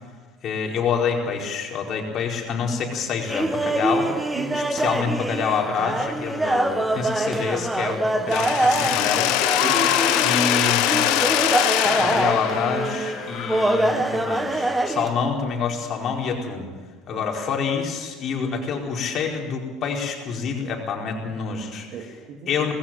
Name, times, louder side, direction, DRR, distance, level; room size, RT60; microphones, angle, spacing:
voice 1, 0.4-4.1 4.5-9.3 10.2-11.0 12.0-16.7 17.1-21.9 22.5-22.7, left 6 dB, 45° left, 1 dB, 4.6 m, -27 dB
sound 1, 3.3-15.1, right 1 dB, 10° right, 1.7 m, -25 dB
voice 2, 4.3-4.7 9.6-10.4 17.1-17.3 21.9-22.7, right 5 dB, 50° right, 5 dB, 2.8 m, -35 dB
Mechanisms, 8.3-14.2, left 13 dB, 65° left, 1.3 m, -23 dB
19.5 x 16.0 x 9.0 m, 1.4 s
hypercardioid pair, 75°, 0 cm